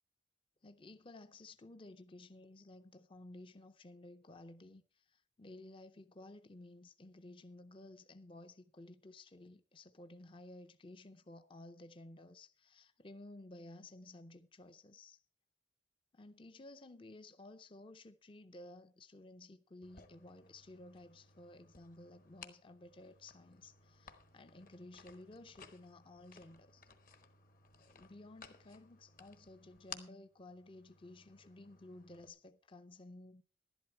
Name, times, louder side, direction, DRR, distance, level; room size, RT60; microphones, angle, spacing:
voice 1, 0.6-15.2 16.1-26.9 27.8-33.4, left 2 dB, 25° left, 0.5 m, -55 dB
sound 1, 19.8-32.3, left 6 dB, 45° left, 1.1 m, -58 dB
11.5 x 11.0 x 4.5 m
head